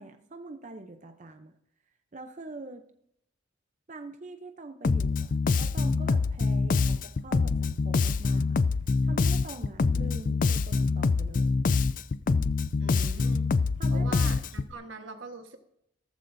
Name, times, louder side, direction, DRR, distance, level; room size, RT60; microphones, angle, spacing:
voice 1, 0.0-1.5 2.1-2.8 3.9-8.6 9.0-11.5 13.8-14.4, right 2 dB, 40° right, 6 dB, 0.7 m, -44 dB
Bass guitar, 4.8-14.7, left 4 dB, 45° left, 0.4 m, -25 dB
voice 2, 12.8-13.5 13.9-15.6, right 3 dB, 85° right, 6 dB, 1.4 m, -42 dB
14.5 x 14.0 x 2.7 m, 0.75 s
head